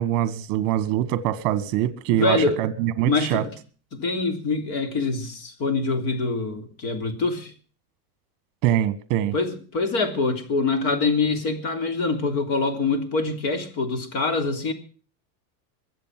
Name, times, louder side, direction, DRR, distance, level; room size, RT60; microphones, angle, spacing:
voice 1, 0.0-3.4 8.6-9.3, right 12 dB, 45° right, 1.5 m, -23 dB
voice 2, 2.1-2.6 3.0-3.5 3.9-7.5 9.3-14.7, left 3 dB, 45° left, 3.4 m, -25 dB
22.5 x 8.0 x 7.5 m
supercardioid pair, 170°, 47 cm